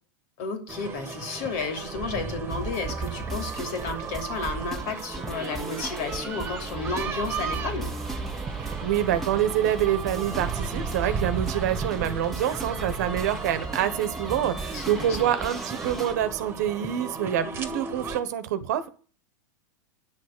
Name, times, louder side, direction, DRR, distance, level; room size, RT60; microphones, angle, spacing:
voice 1, 0.4-7.9 14.7-15.3, left 4 dB, 55° left, 6 dB, 2.9 m, -32 dB
sound 1, 0.7-18.2, right 5 dB, 20° right, 1.8 m, -35 dB
sound 2, 2.5-16.1, right 2 dB, ahead, 1.9 m, -37 dB
voice 2, 8.6-18.9, right 10 dB, 65° right, 13 dB, 1.3 m, -26 dB
9.6 x 6.4 x 7.8 m, 0.40 s
hypercardioid pair, 95°, 10 cm